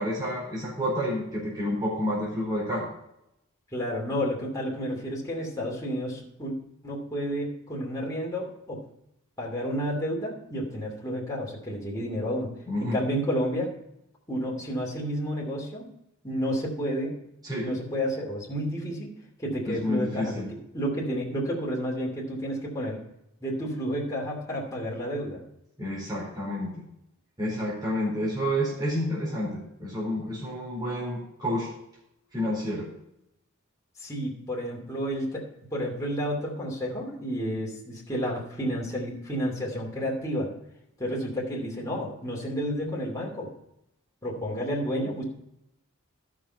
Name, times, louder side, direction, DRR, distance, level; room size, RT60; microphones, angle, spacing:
voice 1, 0.0-2.9 12.7-13.0 17.4-17.6 19.6-20.5 25.8-26.7 27.4-31.7 32.3-32.9, equal, 20° right, -6 dB, 4.4 m, -29 dB
voice 2, 3.7-6.5 6.8-8.8 9.4-12.5 12.8-13.7 14.3-15.8 16.2-17.2 17.6-19.1 19.4-20.4 20.7-23.0 23.4-25.4 34.0-40.5 41.0-43.5 44.2-45.2, equal, 15° left, -4 dB, 2.8 m, -31 dB
12.5 x 6.3 x 4.3 m, 0.81 s
head